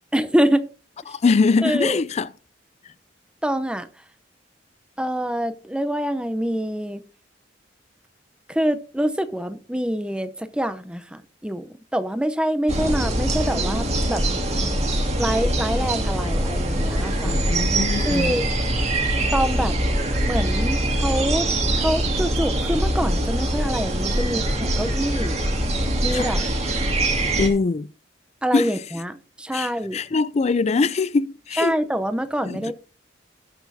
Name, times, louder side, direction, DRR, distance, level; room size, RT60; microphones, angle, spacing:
voice 1, 0.1-0.7 1.6-2.0 3.4-3.9 5.0-7.0 8.5-14.2 15.2-17.4 18.1-18.4 19.3-19.7 20.2-21.5 21.7-25.4 26.0-26.4 28.4-30.0 31.6-32.7, equal, 5° right, 0.7 m, -25 dB
voice 2, 1.1-2.3 17.2-18.4 26.1-26.3 27.4-27.9 28.5-28.7 29.5-31.7 32.5-32.7, left 4 dB, 35° left, 0.4 m, -22 dB
sound 1, 12.7-27.5, right 1 dB, 40° right, 2.2 m, -23 dB
18.0 x 6.1 x 2.7 m
head